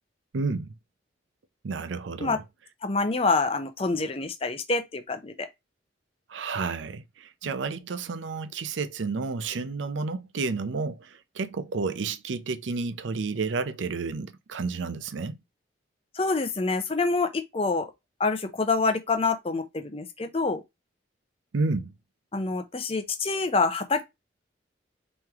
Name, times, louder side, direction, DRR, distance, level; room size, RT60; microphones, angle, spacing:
voice 1, 0.3-0.7 1.6-2.4 6.3-15.4 21.5-21.9, right 4 dB, 80° right, 0.5 m, -31 dB
voice 2, 2.8-5.5 16.1-17.9 18.2-20.6 22.3-24.1, left 3 dB, 30° left, 0.6 m, -26 dB
4.7 x 3.1 x 3.5 m
head